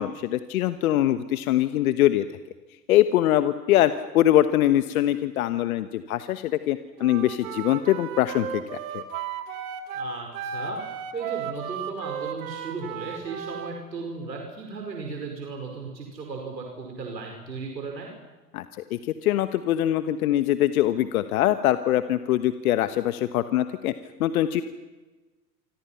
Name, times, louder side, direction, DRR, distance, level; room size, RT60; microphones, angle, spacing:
voice 1, 0.0-2.3 2.9-8.6 8.9-9.0 18.5-18.6 18.9-23.9 24.2-24.6, left 13 dB, 60° left, 11 dB, 1.3 m, -23 dB
Wind instrument woodwind instrument, 7.0-13.7, right 7 dB, 55° right, 3.0 m, -34 dB
voice 2, 9.9-10.8 11.1-18.1, right 4 dB, 80° right, 1 dB, 5.4 m, -36 dB
28.5 x 25.5 x 5.9 m, 1.2 s
hypercardioid pair, 100°, 49 cm